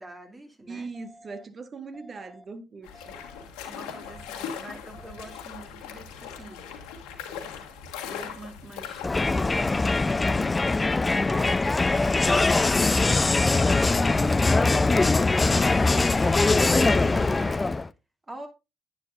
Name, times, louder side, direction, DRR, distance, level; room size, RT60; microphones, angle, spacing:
voice 1, 0.0-0.9 3.6-6.6 8.0-10.6 11.3-12.8 13.4-15.1 15.6-17.7 18.3-18.5, right 1 dB, 25° right, 2.8 m, -44 dB
voice 2, 0.7-3.2, right 4 dB, 45° right, 1.3 m, -40 dB
sound 1, 0.9-1.4 1.9-2.4 2.9-3.4 3.9-4.4 4.9-5.4, equal, 10° right, 3.1 m, -51 dB
sound 2, 2.8-9.1, left 7 dB, 80° left, 1.5 m, -39 dB
Crowd, 9.0-17.9, left 3 dB, 25° left, 0.5 m, -22 dB
10.0 x 8.2 x 2.5 m
hypercardioid pair, 50°, 0 cm